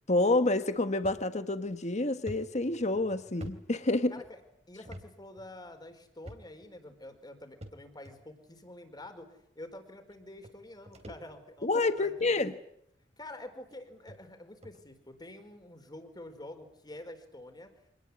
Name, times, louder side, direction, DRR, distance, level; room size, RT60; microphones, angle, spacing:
voice 1, 0.1-4.1 11.6-12.5, left 2 dB, 40° left, 1.5 m, -28 dB
sound 1, 1.0-1.2 1.7-1.8 2.3-4.3 4.8-5.1 5.4-5.5 6.2-6.7 7.6-8.1 9.0-9.1 10.1-10.2 10.4-11.6 12.1-12.3 13.1-13.2 13.7-13.8 14.1-14.2 14.6-14.8, equal, 35° right, 3.5 m, -47 dB
voice 2, 4.1-9.3 9.5-11.7 12.0-12.5 13.2-17.7, left 1 dB, 25° left, 4.5 m, -47 dB
26.0 x 19.0 x 9.7 m
head